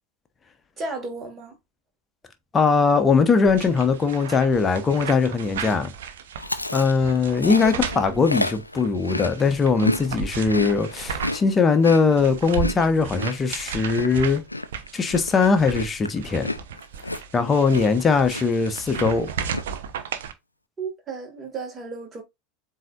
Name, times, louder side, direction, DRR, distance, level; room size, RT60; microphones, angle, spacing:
voice 1, 0.8-1.5 7.6-8.0 20.8-22.2, right 3 dB, 25° right, 1.9 m, -34 dB
voice 2, 2.5-5.9 6.7-14.4 14.9-16.5 17.3-19.3, left 4 dB, 25° left, 0.8 m, -20 dB
sound 1, 3.4-11.5 11.8-20.3, right 7 dB, 65° right, 0.6 m, -35 dB
Chewing mastication, 6.4-10.0 10.3-18.0 18.3-18.7 18.9-19.6, left 2 dB, 85° left, 0.4 m, -31 dB
7.4 x 2.8 x 2.4 m
figure-of-eight pair, 75°, 0 cm